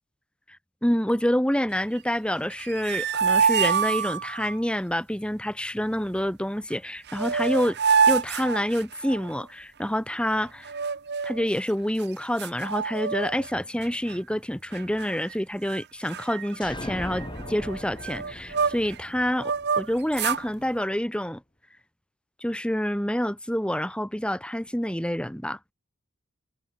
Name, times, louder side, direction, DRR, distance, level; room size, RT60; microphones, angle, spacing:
voice 1, 0.8-7.8 8.1-10.7 11.2-21.4 22.4-25.6, equal, 5° left, 2.2 m, -27 dB
sound 1, 2.5-4.5 6.7-6.8 7.1-9.3 10.6-11.5 12.0-12.1 12.4-13.5 13.8-14.1 14.7-15.3 15.6-15.8 16.1-19.0 19.4-20.4, right 6 dB, 55° right, 1.1 m, -26 dB
sound 2, 16.6-20.3, left 1 dB, 20° left, 2.0 m, -39 dB
head